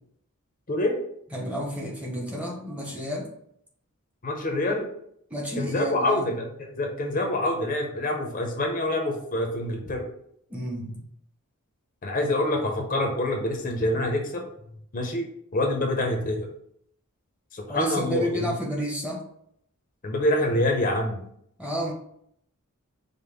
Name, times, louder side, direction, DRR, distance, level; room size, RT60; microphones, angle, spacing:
voice 1, 1.3-3.3 5.3-6.4 10.5-11.0 17.7-19.2 21.6-21.9, equal, 5° right, -1 dB, 0.7 m, -30 dB
voice 2, 4.2-4.9 5.6-10.1 12.0-14.5 14.9-15.2 15.5-16.5 17.5-18.3 20.0-21.2, left 1 dB, 40° left, 2 dB, 0.6 m, -26 dB
5.1 x 2.1 x 3.5 m, 0.70 s
head